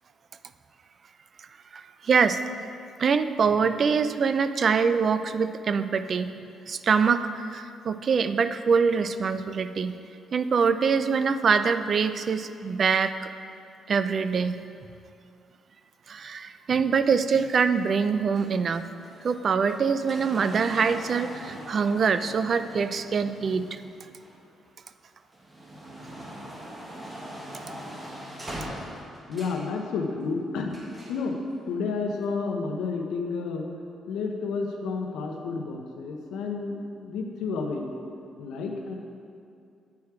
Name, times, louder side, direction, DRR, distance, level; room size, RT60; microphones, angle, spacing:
voice 1, 1.7-2.5 3.0-6.3 6.7-10.0 10.3-13.3 13.9-14.6 16.1-18.9 19.2-23.8, right 5 dB, 50° right, 11 dB, 0.3 m, -24 dB
sound 1, 17.5-24.7 25.2-29.7 30.7-31.3 32.2-32.3, equal, 20° right, 1.4 m, -42 dB
voice 2, 29.3-30.7 31.1-31.4 31.7-33.7 34.1-37.9 38.4-38.9, left 4 dB, 85° left, 3 dB, 0.8 m, -30 dB
8.3 x 4.7 x 4.7 m, 2.5 s
cardioid pair, 90°, 0 cm